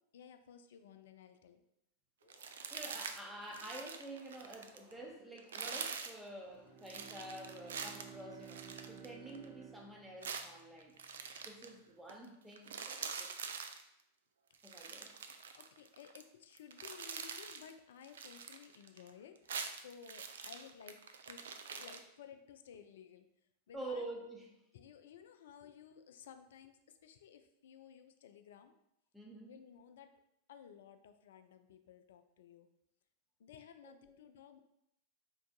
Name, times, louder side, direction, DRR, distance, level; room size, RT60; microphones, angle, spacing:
voice 1, 0.0-1.6 15.5-21.0 21.3-21.4 21.7-23.3 23.7-24.0 24.7-28.7 29.5-30.1 30.5-32.7 33.4-34.6, left 8 dB, 60° left, 8 dB, 0.3 m, -56 dB
sound 1, 2.2-8.3, equal, 80° right, 1.3 m, -66 dB
sound 2, 2.3-3.2 3.5-4.9 5.4-6.2 6.9-9.5 10.2-11.7 12.1-12.2 12.5-13.8 14.5-16.2 16.5-17.7 18.0-19.1 19.4-22.0, right 6 dB, 65° right, 0.3 m, -45 dB
voice 2, 2.7-10.9 11.4-13.3 14.6-15.2 23.7-24.6 29.1-29.5 33.8-33.9, right 1 dB, 5° right, 0 dB, 0.8 m, -48 dB
Bowed string instrument, 6.5-10.8, right 8 dB, 40° right, 0.7 m, -54 dB
4.7 x 3.5 x 2.2 m, 0.80 s
figure-of-eight pair, 90°, 0 cm